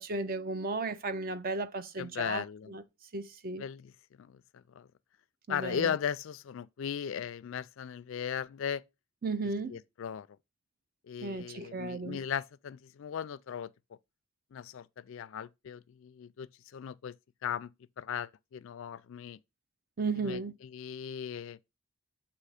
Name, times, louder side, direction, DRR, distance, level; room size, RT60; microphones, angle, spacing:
voice 1, 0.0-2.8 3.1-3.6 5.5-5.9 9.2-9.8 11.2-12.2 20.0-20.5, right 3 dB, 40° right, 0.5 m, -35 dB
voice 2, 2.0-2.7 3.6-3.9 4.2-4.9 5.5-8.8 9.7-10.3 11.1-13.7 14.5-17.1 17.4-17.7 18.0-19.4 20.2-21.6, left 8 dB, 65° left, 0.3 m, -37 dB
7.6 x 3.0 x 4.8 m
head